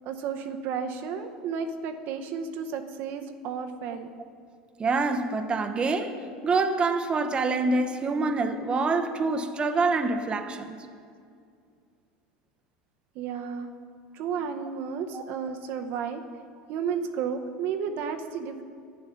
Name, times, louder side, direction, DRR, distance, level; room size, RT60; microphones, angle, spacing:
voice 1, 0.0-4.1 13.1-13.7 14.1-16.2 16.7-18.6, right 6 dB, 60° right, 0.8 m, -32 dB
voice 2, 4.8-6.2 6.4-10.9 15.1-15.2, right 3 dB, 25° right, 0.7 m, -26 dB
10.5 x 8.9 x 5.6 m
hypercardioid pair, 95°, 4 cm